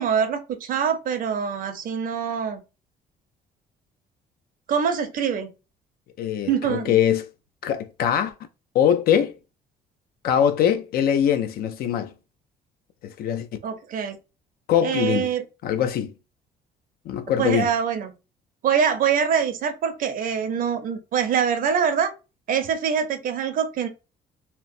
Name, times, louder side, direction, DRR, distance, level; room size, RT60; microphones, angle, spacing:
voice 1, 0.0-2.6 4.7-5.5 6.5-7.0 13.6-14.2 14.8-15.4 17.4-18.1 18.6-22.1 22.5-23.9, right 7 dB, 55° right, 0.6 m, -24 dB
voice 2, 6.2-7.3 7.6-8.3 8.7-9.3 10.2-12.1 13.0-13.5 14.7-15.3 15.6-16.1 17.1-17.7, left 9 dB, 65° left, 0.4 m, -22 dB
2.8 x 2.0 x 2.5 m
cardioid pair, 110°, 17 cm